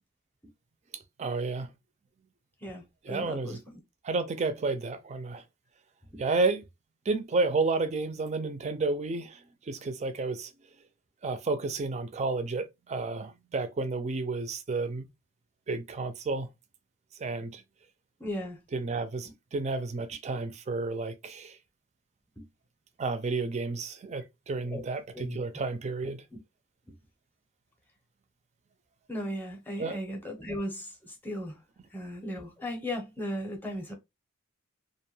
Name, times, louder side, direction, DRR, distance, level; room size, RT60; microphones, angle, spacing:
voice 1, 0.9-1.7 3.0-3.6 4.0-5.4 6.2-6.6 7.1-10.5 11.2-15.1 15.7-16.5 17.2-17.6 18.7-21.6 23.0-26.2 29.8-30.0, right 3 dB, 30° right, 0.4 m, -31 dB
voice 2, 2.6-3.8 6.1-6.2 18.2-18.6 22.4-22.5 24.6-24.8 25.1-25.4 29.1-31.6 31.9-33.9, equal, 10° left, 0.7 m, -36 dB
2.5 x 2.2 x 3.0 m
head